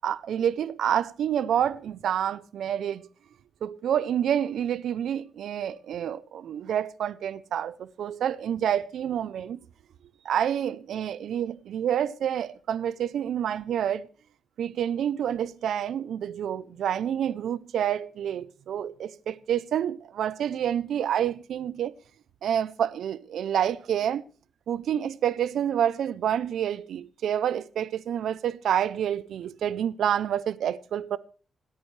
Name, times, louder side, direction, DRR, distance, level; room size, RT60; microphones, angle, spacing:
voice 1, 0.0-3.1 3.6-9.6 10.2-14.1 14.6-21.9 22.4-24.2 24.7-31.2, right 9 dB, 85° right, 0.6 m, -28 dB
26.5 x 9.0 x 3.3 m
wide cardioid pair, 155°, 0 cm